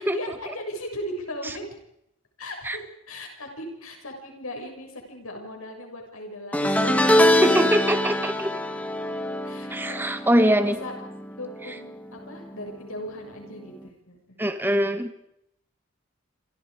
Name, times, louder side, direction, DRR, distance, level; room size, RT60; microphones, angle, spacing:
voice 1, 0.0-1.6 2.4-7.1 9.4-10.9 11.3-14.4 14.7-14.8, equal, 85° left, 3 dB, 6.6 m, -38 dB
sound 1, 6.5-11.9 12.2-12.6 13.8-13.9, left 1 dB, 5° left, 1.7 m, -24 dB
voice 2, 7.4-8.5 9.7-10.8 14.4-15.2, equal, 10° right, 8 dB, 1.6 m, -22 dB
27.5 x 26.5 x 5.1 m, 0.78 s
head